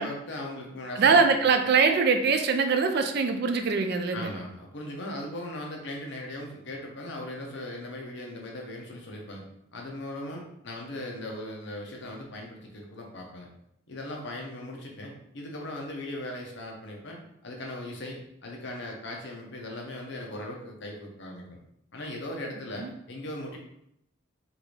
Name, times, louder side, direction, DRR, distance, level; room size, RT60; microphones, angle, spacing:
voice 1, 0.0-1.2 4.1-9.4 9.7-13.5 13.9-21.6 21.9-23.6, left 1 dB, 55° left, 0 dB, 0.8 m, -38 dB
voice 2, 1.0-4.3 22.8-22.9, right 5 dB, 50° right, 7 dB, 0.3 m, -22 dB
3.7 x 2.5 x 3.2 m, 0.76 s
head